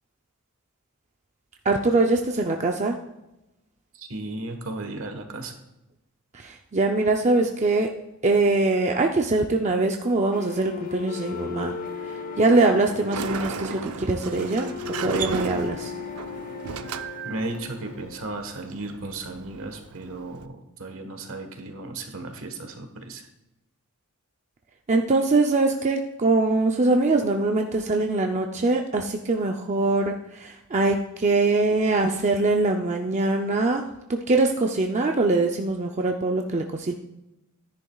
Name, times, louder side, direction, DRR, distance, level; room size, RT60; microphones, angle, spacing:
voice 1, 1.6-3.0 6.3-7.9 8.2-11.7 12.4-14.7 15.0-15.9 24.9-33.8 34.1-36.9, right 3 dB, 30° right, 2 dB, 0.5 m, -23 dB
voice 2, 3.9-5.5 17.2-23.3, right 2 dB, 65° right, 5 dB, 1.4 m, -35 dB
sound 1, 10.3-18.3, left 7 dB, 40° left, 0.8 m, -37 dB
Sliding door, 12.9-20.4, right 6 dB, 85° right, 0.6 m, -35 dB
13.0 x 10.0 x 2.3 m, 0.95 s
head